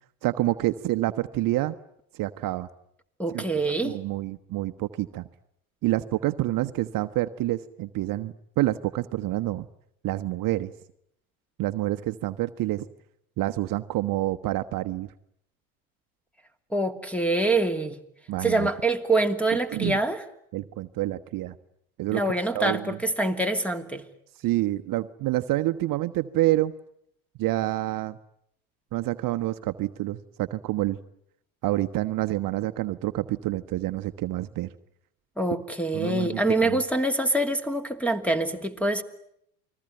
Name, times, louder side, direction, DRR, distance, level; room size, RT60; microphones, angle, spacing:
voice 1, 0.2-1.8 2.1-2.7 3.3-3.4 3.8-5.3 5.8-9.7 10.0-10.7 11.6-12.8 13.4-15.1 18.3-18.7 19.7-20.0 20.5-21.6 22.0-22.2 22.5-23.0 24.4-26.7 27.4-28.2 28.9-31.0 31.6-34.7 35.9-36.8, right 16 dB, 50° right, 11 dB, 1.1 m, -27 dB
voice 2, 3.2-4.0 16.7-18.0 18.4-20.2 22.1-24.0 35.4-39.0, right 2 dB, 5° left, 10 dB, 2.7 m, -25 dB
29.0 x 21.0 x 9.1 m, 0.74 s
hypercardioid pair, 85°, 44 cm